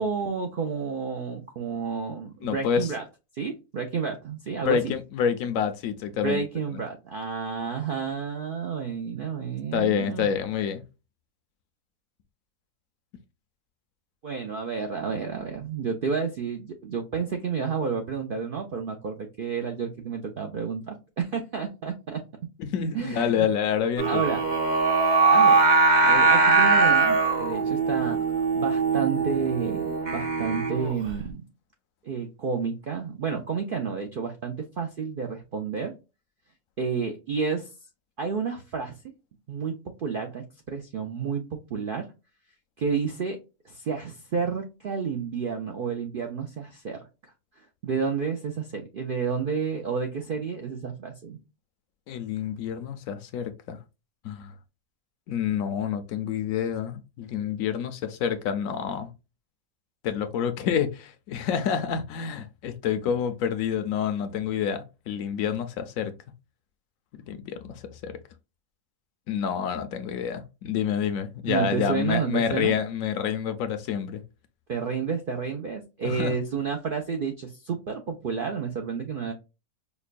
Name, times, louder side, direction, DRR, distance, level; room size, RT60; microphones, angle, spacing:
voice 1, 0.0-3.0 3.3-4.9 6.2-10.3 14.2-22.2 22.9-23.5 24.0-24.4 25.3-25.6 26.0-28.2 28.5-31.4 32.0-35.9 36.8-37.7 38.2-39.0 39.5-42.1 42.8-43.4 43.6-47.0 47.6-51.4 71.4-72.7 74.7-79.3, right 5 dB, 65° right, 0.5 m, -30 dB
voice 2, 2.4-2.9 4.7-6.4 9.7-10.8 22.6-24.2 52.1-53.8 54.2-54.5 55.3-59.1 60.0-66.1 67.1-68.1 69.3-74.2 76.0-76.3, left 8 dB, 70° left, 0.9 m, -28 dB
Singing, 24.0-31.1, right 4 dB, 40° right, 0.7 m, -21 dB
5.2 x 2.1 x 2.4 m
omnidirectional pair, 1.6 m